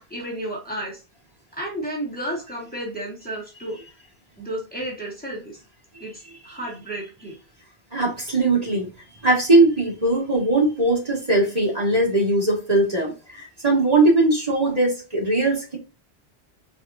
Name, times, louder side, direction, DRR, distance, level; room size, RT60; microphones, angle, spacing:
voice 1, 0.1-1.0 1.5-3.8 4.4-5.6 6.0-7.3, right 1 dB, 10° left, -4 dB, 1.9 m, -32 dB
voice 2, 7.9-8.9 9.2-15.8, right 2 dB, 40° right, -3 dB, 2.2 m, -20 dB
4.5 x 4.1 x 2.7 m, 0.31 s
omnidirectional pair, 1.0 m